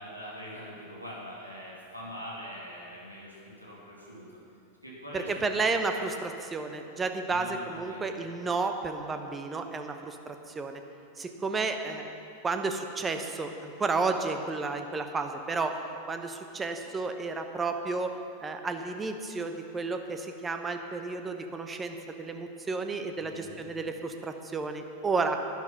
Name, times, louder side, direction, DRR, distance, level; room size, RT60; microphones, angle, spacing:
voice 1, 0.0-4.3 4.8-5.6 7.3-8.0 23.2-23.6, equal, 90° right, -5 dB, 2.9 m, -43 dB
voice 2, 5.1-10.8 11.2-12.1 12.4-15.8 16.1-18.2 18.4-25.4, right 3 dB, 15° right, 6 dB, 0.9 m, -32 dB
12.0 x 11.0 x 5.7 m, 2.6 s
figure-of-eight pair, 90°, 0 cm